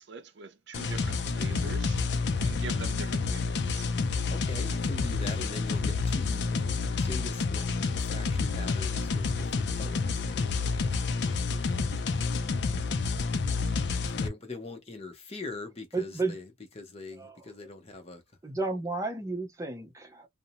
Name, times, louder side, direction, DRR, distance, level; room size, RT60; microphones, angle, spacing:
voice 1, 0.0-3.9, right 4 dB, 70° right, 0.5 m, -44 dB
sound 1, 0.7-14.3, left 4 dB, 60° left, 0.4 m, -29 dB
voice 2, 4.3-10.5 14.2-16.5 16.8-18.2, left 2 dB, 30° left, 0.7 m, -42 dB
voice 3, 15.9-16.4 17.2-17.5 18.4-20.3, right 3 dB, 15° right, 0.6 m, -33 dB
2.6 x 2.1 x 2.6 m
head